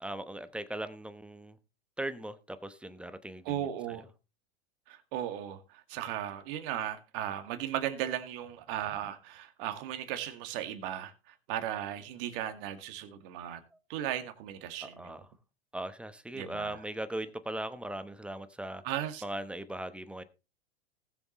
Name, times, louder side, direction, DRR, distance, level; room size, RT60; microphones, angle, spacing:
voice 1, 0.0-1.6 2.0-4.0 14.8-15.3 15.7-18.8 19.2-20.2, right 1 dB, 5° right, 1.0 m, -39 dB
voice 2, 3.5-4.1 4.9-13.6 13.9-15.2 16.3-16.8 18.8-19.2, right 11 dB, 55° right, 2.1 m, -36 dB
19.0 x 7.0 x 3.1 m
hypercardioid pair, 105°, 32 cm